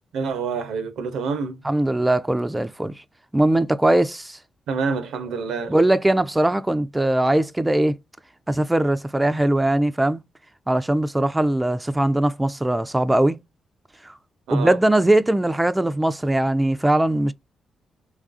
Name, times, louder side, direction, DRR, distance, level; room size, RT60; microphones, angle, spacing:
voice 1, 0.1-1.6 4.7-5.8 14.5-14.8, right 5 dB, 85° right, 0.6 m, -27 dB
voice 2, 1.6-3.0 3.3-4.4 5.7-8.0 8.5-10.2 10.7-13.4 14.0-14.2 14.5-17.3, right 1 dB, 15° right, 0.3 m, -20 dB
3.2 x 2.4 x 2.4 m
supercardioid pair, 60°, 0 cm